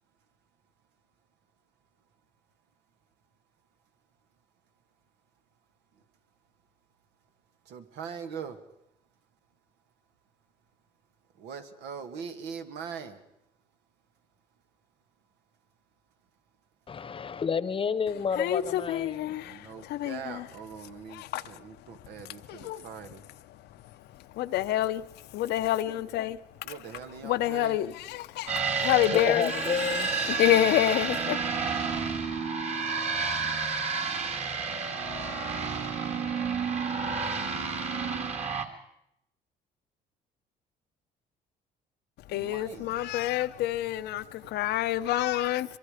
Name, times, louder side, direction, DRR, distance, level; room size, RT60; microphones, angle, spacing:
voice 1, 7.7-8.6 11.4-13.2 19.4-23.2 26.6-27.8 42.3-43.0, right 7 dB, 85° right, 1.9 m, -42 dB
voice 2, 16.9-19.3 29.1-30.1, left 6 dB, 30° left, 1.0 m, -30 dB
voice 3, 18.4-19.6 19.9-20.4 21.1-21.4 22.5-22.8 24.4-25.0 25.3-26.4 27.2-28.5 28.8-29.5 29.8-31.4 42.3-45.8, left 13 dB, 80° left, 0.8 m, -27 dB
sound 1, 28.5-38.6, right 5 dB, 40° right, 2.2 m, -30 dB
24.5 x 22.5 x 5.0 m
cardioid pair, 110°, 17 cm